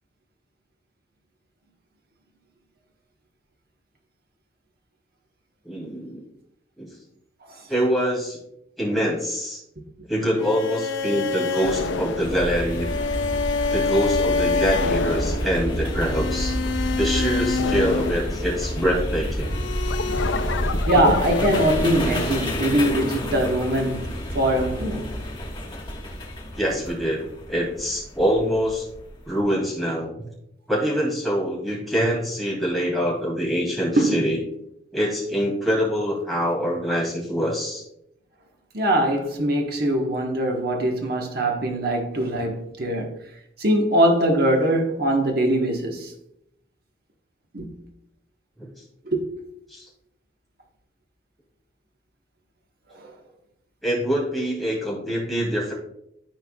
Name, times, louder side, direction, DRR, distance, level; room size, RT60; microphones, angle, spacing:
voice 1, 5.6-6.2 6.8-6.9 7.7-8.4 8.8-9.6 10.1-12.9 13.7-16.6 17.0-19.5 26.5-27.2 27.5-28.9 29.3-30.1 30.7-34.4 34.9-37.8 48.6-48.7 49.7-49.9 53.8-55.7, equal, ahead, 2.4 m, -24 dB
sound 1, 10.4-18.9 19.4-21.7, left 4 dB, 90° left, 0.5 m, -26 dB
sound 2, 12.2-29.4, equal, 25° left, 1.4 m, -29 dB
voice 2, 20.9-25.2 33.9-34.3 38.7-43.2 43.6-46.1 47.5-47.8 49.0-49.3 52.9-53.1, right 1 dB, 55° right, 1.2 m, -22 dB
13.0 x 4.5 x 2.3 m
head